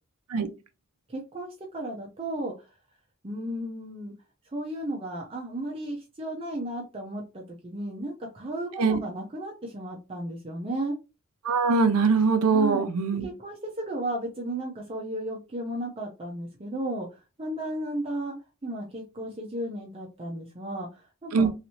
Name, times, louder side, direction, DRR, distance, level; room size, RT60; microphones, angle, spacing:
voice 1, 1.1-2.7 3.2-4.1 4.5-11.0 12.5-12.9 13.2-18.4 18.6-21.5, right 1 dB, 25° right, 0.6 m, -34 dB
voice 2, 11.4-13.3 21.3-21.5, right 4 dB, 85° right, 0.6 m, -22 dB
3.2 x 3.0 x 2.8 m
head